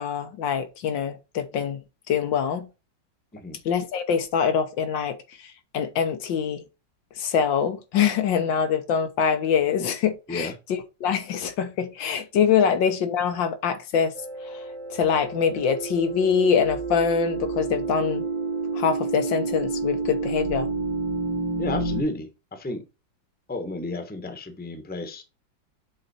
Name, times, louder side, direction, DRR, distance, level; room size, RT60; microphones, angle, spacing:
voice 1, 0.0-1.8 2.1-2.7 3.7-6.6 7.2-14.1 14.4-14.6 14.9-18.2 18.7-20.7, left 7 dB, 75° left, 1.7 m, -24 dB
sound 1, 14.2-22.0, right 3 dB, 80° right, 2.2 m, -29 dB
voice 2, 21.6-22.8 23.5-25.2, left 2 dB, 5° left, 0.9 m, -32 dB
7.8 x 4.0 x 4.1 m
omnidirectional pair, 2.1 m